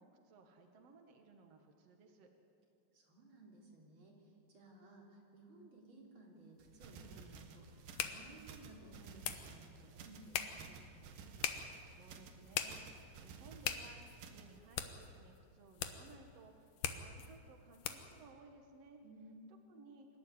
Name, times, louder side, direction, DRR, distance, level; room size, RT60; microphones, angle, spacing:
voice 1, 0.0-2.3 11.4-19.0 19.7-20.1, right 4 dB, 85° right, 4 dB, 1.4 m, -60 dB
voice 2, 2.9-10.8 19.0-19.5, right 2 dB, 30° right, -1 dB, 3.7 m, -58 dB
sound 1, 6.6-18.2, left 9 dB, 90° left, 1.8 m, -44 dB
sound 2, 6.6-14.6, right 5 dB, 65° right, 2.4 m, -55 dB
25.0 x 14.0 x 9.8 m, 2.5 s
omnidirectional pair, 5.4 m